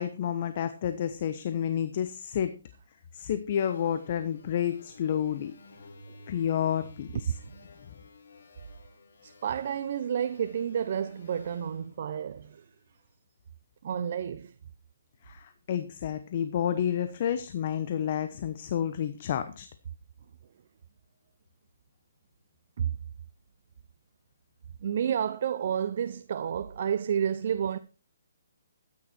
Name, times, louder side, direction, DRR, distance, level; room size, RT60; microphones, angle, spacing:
voice 1, 0.0-2.6 3.1-5.5 6.3-7.3 15.2-19.7, left 9 dB, 40° left, 1.0 m, -30 dB
sound 1, 3.5-13.0, left 2 dB, 65° left, 4.7 m, -53 dB
voice 2, 9.2-12.6 13.8-14.5 22.8-22.9 24.8-27.8, right 8 dB, 50° right, 0.7 m, -30 dB
13.5 x 9.4 x 4.5 m
hypercardioid pair, 160°, 0 cm